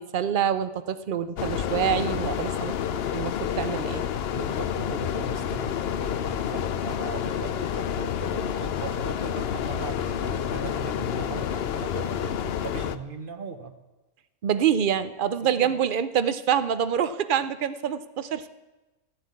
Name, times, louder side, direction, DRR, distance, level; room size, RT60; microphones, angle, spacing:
voice 1, 0.0-2.7 3.1-4.0 14.4-18.5, right 8 dB, 55° right, 13 dB, 0.5 m, -26 dB
sound 1, 1.4-13.0, left 9 dB, 60° left, 0.7 m, -29 dB
voice 2, 4.3-13.7 15.4-15.8, right 4 dB, 40° right, 8 dB, 1.1 m, -38 dB
15.0 x 7.9 x 9.5 m, 1.1 s
omnidirectional pair, 1.5 m